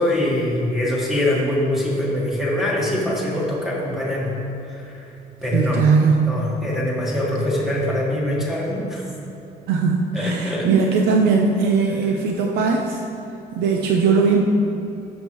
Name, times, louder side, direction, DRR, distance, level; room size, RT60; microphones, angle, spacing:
voice 1, 0.0-4.3 4.6-5.1 5.4-5.8 6.3-9.0 10.1-10.7, left 1 dB, ahead, -5 dB, 1.6 m, -23 dB
voice 2, 5.5-6.1 9.7-13.0 13.5-14.4, right 5 dB, 85° right, 1 dB, 0.7 m, -19 dB
12.5 x 7.5 x 3.1 m, 3.0 s
cardioid pair, 175°, 16 cm